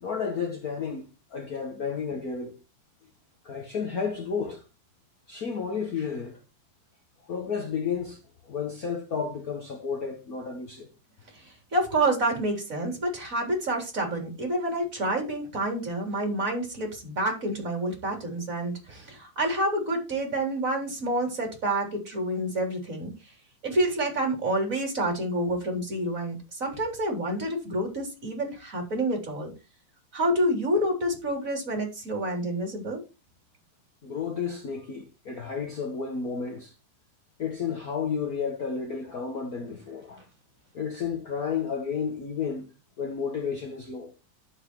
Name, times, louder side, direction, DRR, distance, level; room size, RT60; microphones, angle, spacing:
voice 1, 0.0-2.6 3.4-4.6 5.3-6.4 7.3-10.9 34.0-36.7 37.4-40.2 40.7-42.7 43.0-44.1, left 6 dB, 55° left, 0.9 m, -32 dB
voice 2, 11.7-23.1 23.6-29.5 30.1-33.0, right 1 dB, 25° right, 3.9 m, -28 dB
11.5 x 6.6 x 4.6 m
omnidirectional pair, 3.8 m